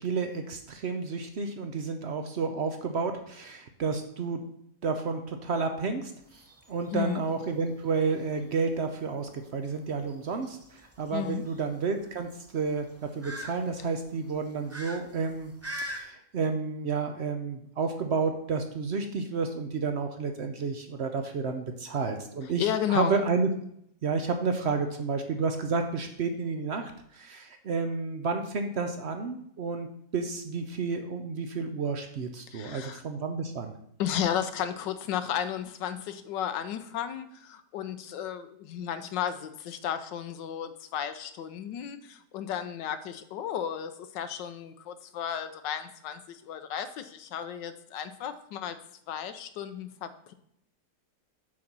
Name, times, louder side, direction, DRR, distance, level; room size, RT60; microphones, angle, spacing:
voice 1, 0.0-4.4 4.8-6.1 6.7-12.8 13.1-15.5 15.8-23.5 24.0-29.9 30.1-33.7, right 4 dB, 60° right, 6 dB, 0.7 m, -31 dB
sound 1, 6.2-16.0, equal, 15° right, 0.5 m, -44 dB
voice 2, 11.1-11.4 22.6-23.2 32.5-33.0 34.0-48.8 49.1-50.3, left 9 dB, 90° left, 10 dB, 1.4 m, -33 dB
7.5 x 4.1 x 6.0 m, 0.72 s
omnidirectional pair, 1.9 m